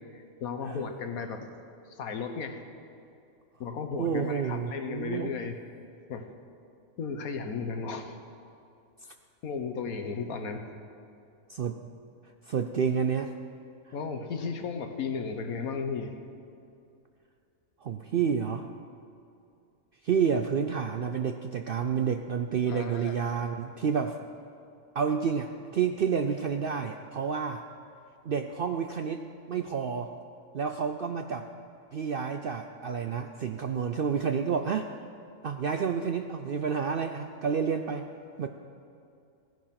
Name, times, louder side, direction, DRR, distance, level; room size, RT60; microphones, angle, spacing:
voice 1, 0.1-1.5 1.9-2.6 3.6-5.6 6.1-6.3 7.0-8.2 9.4-10.6 13.9-16.2 22.7-23.2, left 5 dB, 75° left, 6 dB, 1.5 m, -35 dB
voice 2, 4.0-5.3 11.5-11.8 12.5-13.3 17.8-18.7 20.0-24.2 24.9-27.6 28.2-30.1 30.5-31.5 31.9-34.9 35.4-38.1 38.4-38.5, right 6 dB, 65° right, 6 dB, 0.5 m, -29 dB
17.0 x 10.5 x 5.9 m, 2.6 s
omnidirectional pair, 1.5 m